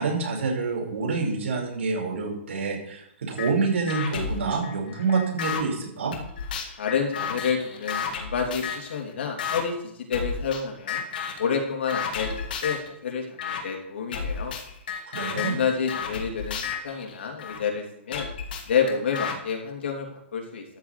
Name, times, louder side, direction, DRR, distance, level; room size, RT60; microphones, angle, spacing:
voice 1, 0.0-6.1 15.1-15.6, right 4 dB, 75° right, -1 dB, 5.5 m, -27 dB
sound 1, 3.4-3.5 3.9-5.6 6.1-8.9 9.4-9.6 10.1-10.6 10.9-11.5 11.9-12.9 13.4-13.6 14.1-17.6 18.1-19.4, left 6 dB, 45° left, 2.0 m, -32 dB
voice 2, 6.8-11.0 11.4-12.3 12.6-14.6 15.3-16.6 16.8-18.3 18.7-20.6, left 6 dB, 65° left, 1 dB, 3.1 m, -29 dB
13.5 x 5.1 x 8.3 m, 0.77 s
hypercardioid pair, 175°, 7 cm